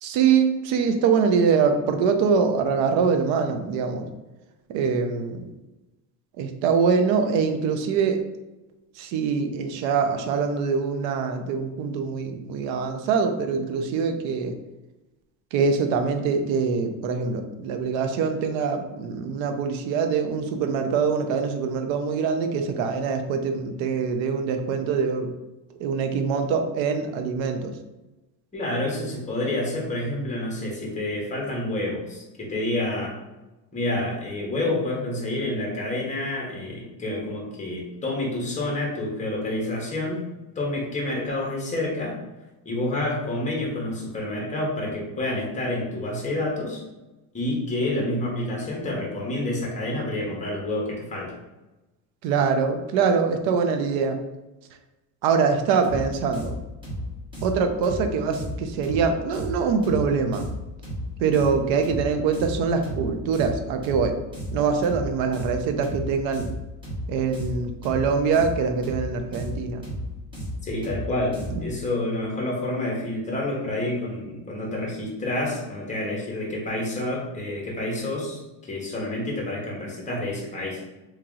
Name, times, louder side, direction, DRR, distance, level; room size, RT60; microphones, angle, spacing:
voice 1, 0.0-4.1 4.7-5.5 6.4-8.2 9.0-14.5 15.5-25.3 25.8-27.8 52.2-54.2 55.2-56.5 57.4-60.5 61.2-64.2 64.5-66.5 67.1-69.8, right 5 dB, 80° right, 6 dB, 0.7 m, -24 dB
voice 2, 28.5-33.2 33.7-40.3 40.5-42.2 42.6-46.8 47.3-51.3 70.6-80.8, left 1 dB, 15° left, -2 dB, 1.1 m, -28 dB
sound 1, 55.8-71.7, equal, 10° right, 1.3 m, -34 dB
3.0 x 2.9 x 3.7 m, 1.0 s
cardioid pair, 150°, 44 cm